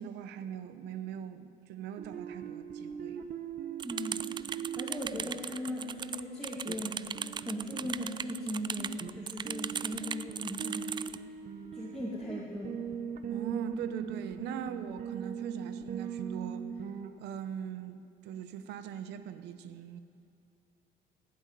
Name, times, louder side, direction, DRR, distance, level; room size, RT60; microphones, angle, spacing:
voice 1, 0.0-3.2 13.3-16.7 17.2-20.0, right 8 dB, 85° right, 10 dB, 0.9 m, -41 dB
sound 1, 2.0-17.1, right 7 dB, 60° right, 1.1 m, -41 dB
voice 2, 3.8-4.3 4.8-7.1 7.4-11.0 11.7-12.8, left 1 dB, 5° left, -7 dB, 2.4 m, -38 dB
sound 2, 3.8-11.2, right 7 dB, 25° right, 0.3 m, -38 dB
16.5 x 8.2 x 9.2 m, 2.5 s
cardioid pair, 110°, 17 cm